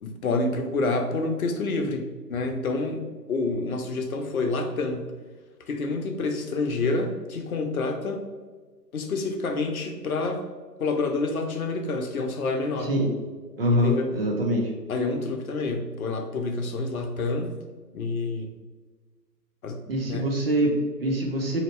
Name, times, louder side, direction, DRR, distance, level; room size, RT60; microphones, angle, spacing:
voice 1, 0.0-3.0 3.3-5.0 5.7-8.2 8.9-10.4 10.8-12.9 13.8-14.1 14.9-17.6 17.9-18.5 19.6-19.8 20.1-20.2, left 3 dB, 60° left, 5 dB, 0.7 m, -28 dB
voice 2, 12.8-13.1 13.6-14.7 19.9-21.6, equal, 35° right, 1 dB, 0.7 m, -24 dB
3.9 x 2.9 x 3.2 m, 1.4 s
figure-of-eight pair, 140°, 50 cm